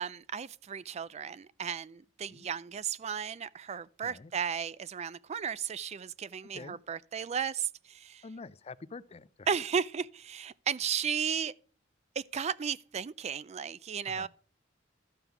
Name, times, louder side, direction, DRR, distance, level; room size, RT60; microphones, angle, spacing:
voice 1, 0.0-8.2 9.5-11.5 12.2-14.3, right 7 dB, 35° right, 0.4 m, -34 dB
voice 2, 8.2-9.5 14.1-14.3, left 4 dB, 35° left, 0.5 m, -46 dB
13.5 x 5.5 x 5.9 m
head